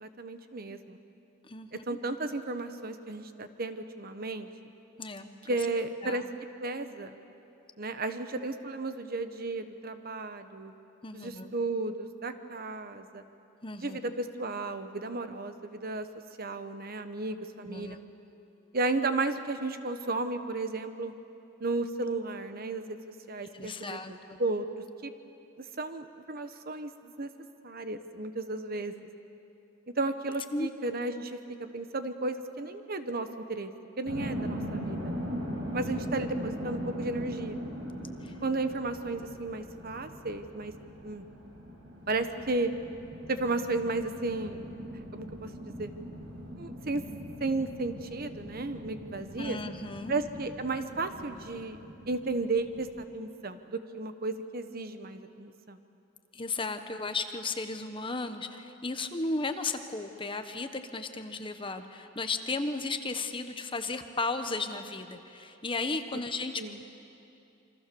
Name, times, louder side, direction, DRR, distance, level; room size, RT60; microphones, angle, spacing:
voice 1, 0.0-1.0 1.9-4.5 5.5-6.2 6.6-7.1 7.8-10.7 11.1-13.2 13.8-16.1 16.4-18.0 18.7-21.1 21.6-23.0 23.3-25.1 25.6-27.3 27.6-28.9 30.0-31.4 31.7-33.7 34.0-35.1 35.7-37.6 38.4-40.7 41.0-41.3 42.1-42.7 43.3-45.9 46.6-47.0 47.4-49.6 50.1-51.8 52.1-55.8 66.6-66.8, right 2 dB, 50° right, 9 dB, 1.2 m, -34 dB
voice 2, 1.4-2.0 5.0-5.3 6.0-6.2 11.0-11.5 13.6-14.0 17.6-18.0 23.5-24.4 30.5-30.7 38.2-38.3 49.4-50.1 56.3-66.6, left 3 dB, 25° left, 8 dB, 1.2 m, -35 dB
sound 1, 34.1-53.0, equal, 85° right, 6.0 m, -40 dB
28.0 x 25.0 x 7.0 m, 2.8 s
head